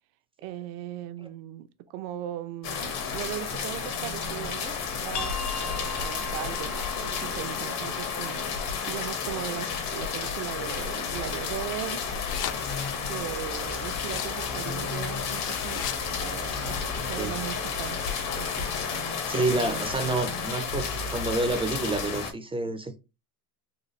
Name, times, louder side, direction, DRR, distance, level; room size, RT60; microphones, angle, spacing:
voice 1, 0.4-1.7 1.9-8.5 8.8-12.0 13.0-15.8 16.2-18.0 18.3-18.7, right 13 dB, 75° right, 0.6 m, -38 dB
sound 1, 2.6-22.3, left 6 dB, 70° left, 1.2 m, -32 dB
sound 2, 5.1-10.5, left 5 dB, 85° left, 0.9 m, -41 dB
sound 3, 11.7-17.0, left 11 dB, 45° left, 0.5 m, -40 dB
voice 2, 19.3-23.0, right 2 dB, 15° right, 0.3 m, -28 dB
3.9 x 2.3 x 3.1 m
supercardioid pair, 100°, 45 cm